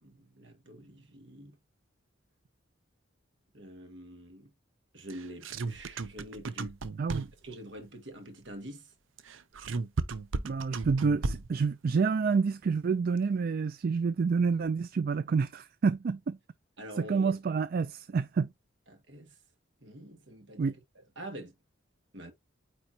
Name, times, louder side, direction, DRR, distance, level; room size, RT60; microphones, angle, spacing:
voice 1, 0.0-1.6 3.5-4.5 4.9-6.8 7.4-8.9 16.8-17.4 18.9-19.4 19.8-21.5 22.1-22.3, right 1 dB, 65° right, 2.0 m, -46 dB
sound 1, 5.1-7.5 9.2-11.6, right 3 dB, 85° right, 0.6 m, -34 dB
voice 2, 7.0-7.3 10.4-16.4 17.0-18.5 20.6-20.7, right 5 dB, 50° right, 0.3 m, -28 dB
9.0 x 4.1 x 2.8 m
head